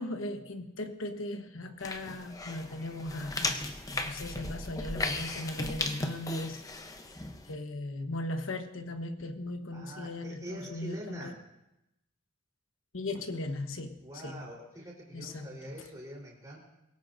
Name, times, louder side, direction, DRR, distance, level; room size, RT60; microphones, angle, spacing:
voice 1, 0.0-3.6 3.9-6.6 7.5-11.3 12.9-14.0 14.2-14.4 15.1-15.5, left 1 dB, 80° left, 7 dB, 1.2 m, -37 dB
sound 1, 1.8-7.5, left 2 dB, 15° left, 0.7 m, -36 dB
voice 2, 9.7-11.4 14.0-16.6, right 1 dB, 20° right, -2 dB, 3.7 m, -44 dB
24.0 x 16.5 x 2.6 m, 0.90 s
head